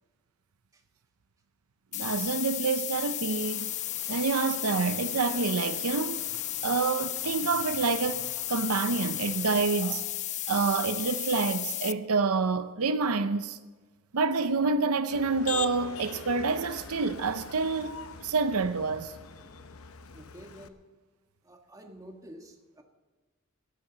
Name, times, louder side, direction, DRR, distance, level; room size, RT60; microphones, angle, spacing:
sound 1, 1.9-11.9, left 13 dB, 35° left, 0.4 m, -34 dB
voice 1, 1.9-3.7 4.1-6.2 6.6-10.0 10.5-13.6 14.1-19.1, right 4 dB, 85° right, 0.7 m, -28 dB
sound 2, 3.3-9.9, right 3 dB, 35° right, 4.9 m, -52 dB
Motor vehicle (road), 15.1-20.7, left 6 dB, 70° left, 0.9 m, -41 dB
voice 2, 20.1-20.8 21.4-22.8, right 1 dB, 15° right, 1.6 m, -49 dB
18.5 x 13.5 x 3.9 m
head